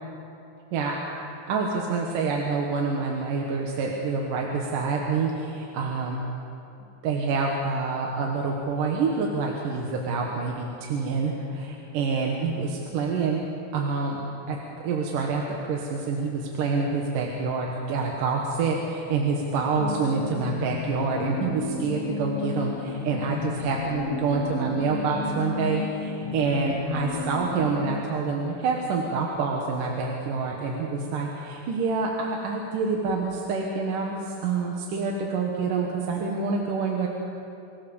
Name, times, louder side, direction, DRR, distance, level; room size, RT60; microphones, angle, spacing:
voice 1, 1.5-6.2 7.0-13.4 13.7-14.2 14.5-14.6 14.8-37.1, right 4 dB, 70° right, -1 dB, 3.0 m, -27 dB
sound 1, 19.8-28.0, left 4 dB, 55° left, 2.0 m, -33 dB
25.5 x 16.5 x 7.1 m, 2.8 s
omnidirectional pair, 4.2 m